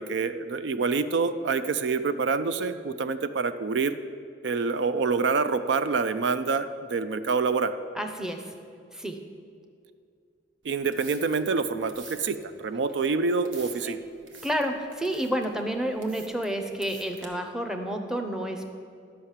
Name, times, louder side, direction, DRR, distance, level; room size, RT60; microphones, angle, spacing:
voice 1, 0.0-4.0 4.4-7.7 10.6-14.0, right 4 dB, 65° right, 12 dB, 0.4 m, -26 dB
voice 2, 7.9-8.5 8.9-9.3 13.9-14.0 14.4-18.6, right 1 dB, 5° right, 5 dB, 0.6 m, -30 dB
sound 1, 10.6-17.3, right 4 dB, 80° right, 1.1 m, -49 dB
11.0 x 5.6 x 7.3 m, 2.3 s
head